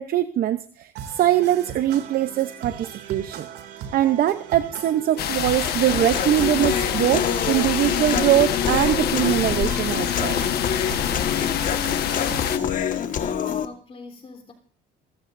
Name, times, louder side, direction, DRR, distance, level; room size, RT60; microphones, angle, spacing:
voice 1, 0.0-3.5 3.9-10.4, right 12 dB, 60° right, 11 dB, 0.8 m, -22 dB
sound 1, 0.9-12.7, right 8 dB, 90° right, 2.6 m, -38 dB
sound 2, 5.2-12.6, left 11 dB, 70° left, 1.3 m, -27 dB
Human voice, 5.6-13.7, left 8 dB, 50° left, 1.6 m, -26 dB
voice 2, 13.1-14.5, left 4 dB, 35° left, 2 dB, 3.6 m, -43 dB
28.5 x 14.5 x 2.6 m, 0.39 s
cardioid pair, 110°, 17 cm